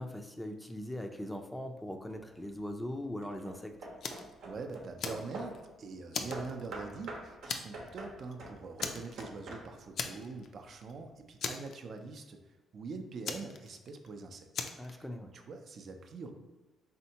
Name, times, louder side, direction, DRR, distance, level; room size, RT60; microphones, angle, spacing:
voice 1, 0.0-3.8 14.8-15.3, left 1 dB, 5° left, 5 dB, 0.4 m, -40 dB
Hammer / Wood, 2.1-2.6 3.2-5.7 6.3-10.0, right 2 dB, 80° right, 0.8 m, -45 dB
Fire, 4.0-4.3 4.7-5.7 6.1-7.1 7.5-7.9 8.2-8.3 8.8-9.5 10.0-10.5 10.8-10.9 11.4-12.2 13.2-14.1 14.5-14.9, left 5 dB, 65° left, 0.4 m, -38 dB
voice 2, 4.4-12.4 12.7-14.5 14.9-15.0 15.3-16.3, right 4 dB, 55° right, 6 dB, 0.5 m, -44 dB
4.3 x 3.4 x 2.8 m, 1.2 s
cardioid pair, 90°, 0 cm